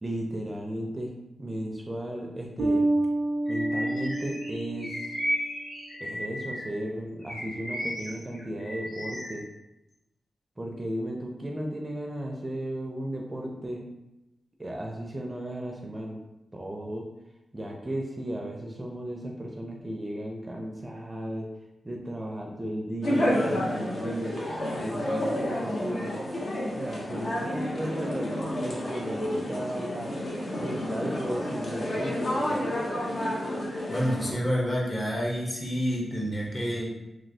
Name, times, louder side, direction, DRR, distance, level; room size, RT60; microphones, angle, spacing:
voice 1, 0.0-1.1 1.4-2.9 3.5-5.1 6.0-9.4 10.6-13.9 14.6-16.2 16.5-17.1 17.5-21.5 21.8-26.2 26.7-30.2 30.6-32.6, right 1 dB, 25° right, 0 dB, 0.4 m, -35 dB
Bass guitar, 2.6-5.2, right 2 dB, 85° right, 0.4 m, -28 dB
Bird vocalization bird call bird song, 3.5-6.8 7.2-9.4, equal, 75° left, 1.3 m, -35 dB
sound 1, 23.0-34.3, left 1 dB, 60° left, 0.8 m, -30 dB
voice 2, 33.9-36.9, equal, 30° left, -3 dB, 1.0 m, -28 dB
3.0 x 2.8 x 2.7 m, 0.95 s
cardioid pair, 75°, 0 cm